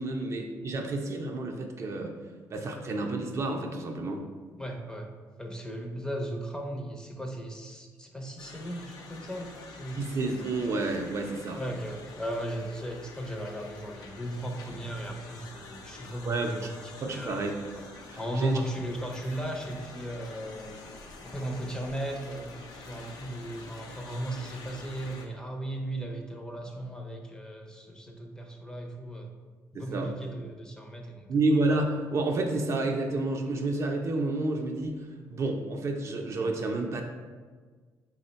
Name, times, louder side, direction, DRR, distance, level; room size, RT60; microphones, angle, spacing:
voice 1, 0.0-2.2 2.5-4.2 9.9-11.6 16.2-16.5 17.0-18.6 29.7-30.1 31.3-37.0, right 2 dB, 45° right, 2 dB, 0.4 m, -30 dB
voice 2, 4.6-5.1 5.4-10.1 11.6-16.7 17.0-17.3 18.2-20.7 21.2-29.3 29.7-31.3, right 1 dB, 10° left, 1 dB, 0.5 m, -36 dB
sound 1, 8.4-25.3, left 3 dB, 75° left, 0.5 m, -47 dB
3.6 x 2.1 x 4.0 m, 1.5 s
cardioid pair, 95°, 7 cm